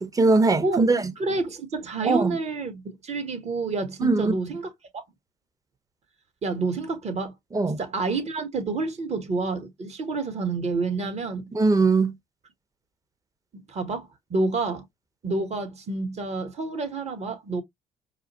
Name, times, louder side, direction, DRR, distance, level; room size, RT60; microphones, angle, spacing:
voice 1, 0.0-1.1 2.0-2.4 4.0-4.3 7.5-7.8 11.5-12.1, right 3 dB, 20° right, 0.8 m, -21 dB
voice 2, 1.2-4.7 4.9-5.0 6.4-7.3 7.8-11.5 13.5-14.8 15.2-17.6, right 3 dB, 45° right, 1.4 m, -29 dB
4.8 x 2.0 x 2.8 m
hypercardioid pair, 60°, 16 cm